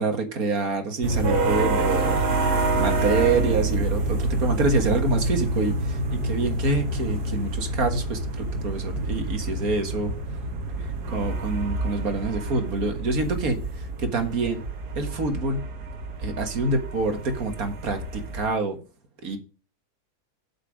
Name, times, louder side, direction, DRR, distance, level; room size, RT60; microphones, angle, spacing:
voice 1, 0.0-2.2 2.7-10.1 10.8-14.6 15.0-15.7 16.2-18.8 19.2-19.4, right 3 dB, 65° right, 6 dB, 2.0 m, -27 dB
sound 1, 1.0-18.5, right 2 dB, 80° right, 1.9 m, -27 dB
7.8 x 7.4 x 5.0 m, 0.35 s
omnidirectional pair, 1.7 m